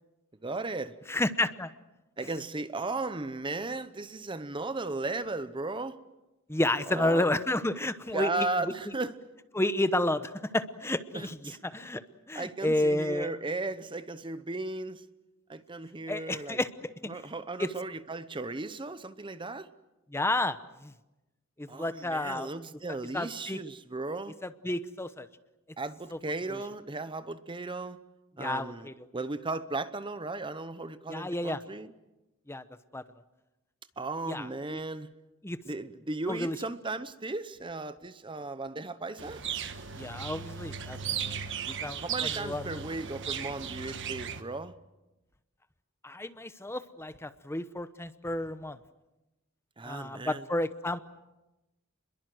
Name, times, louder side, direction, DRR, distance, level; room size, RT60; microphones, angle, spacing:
voice 1, 0.4-0.9 2.2-6.0 6.9-7.3 8.1-9.2 11.1-11.6 12.3-15.0 15.5-16.6 17.1-19.7 21.7-24.3 25.8-28.0 28.4-31.9 34.0-35.1 35.7-39.4 42.0-44.7 49.8-50.5, right 2 dB, 25° right, 13 dB, 0.9 m, -36 dB
voice 2, 1.1-1.7 6.5-8.7 9.5-12.0 12.3-13.3 16.1-17.1 17.6-17.7 20.1-20.9 21.6-22.5 23.1-23.6 24.4-25.3 26.1-26.2 26.5-26.6 28.4-29.1 31.1-31.6 32.5-32.6 32.9-33.0 34.3-34.8 35.4-35.6 36.3-36.6 40.0-42.7 46.0-48.8 49.8-51.0, left 1 dB, 10° left, 12 dB, 0.9 m, -31 dB
sound 1, 39.2-44.4, right 7 dB, 60° right, 1.4 m, -36 dB
30.0 x 22.0 x 7.7 m, 1.0 s
head